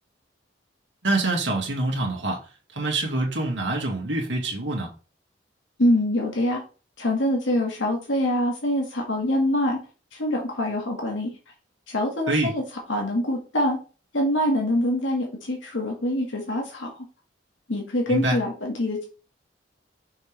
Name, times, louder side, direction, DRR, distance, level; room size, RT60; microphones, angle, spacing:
voice 1, 1.0-2.4 2.7-4.9 12.3-12.5 18.1-18.4, right 2 dB, 80° right, 2.1 m, -25 dB
voice 2, 5.8-6.6 7.0-9.8 10.1-11.3 11.9-12.6 12.9-13.8 14.1-17.0 17.7-19.0, left 1 dB, 85° left, 1.8 m, -24 dB
6.5 x 4.5 x 3.4 m
head